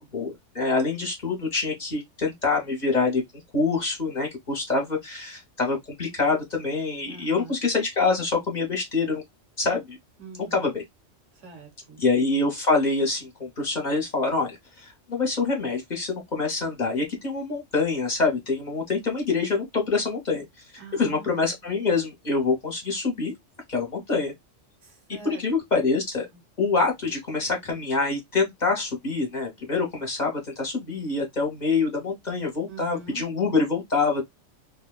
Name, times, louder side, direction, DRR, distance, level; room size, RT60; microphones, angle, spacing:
voice 1, 0.1-3.2 3.5-9.2 9.6-10.0 10.5-10.8 12.0-20.4 21.0-23.3 23.7-24.3 25.2-26.3 26.6-34.2, left 4 dB, 40° left, 0.9 m, -25 dB
voice 2, 7.0-7.6 10.2-10.6 11.3-12.0 20.8-21.6 24.8-25.4 26.3-26.4 32.7-33.2, right 5 dB, 75° right, 1.3 m, -44 dB
2.8 x 2.2 x 2.2 m
omnidirectional pair, 1.3 m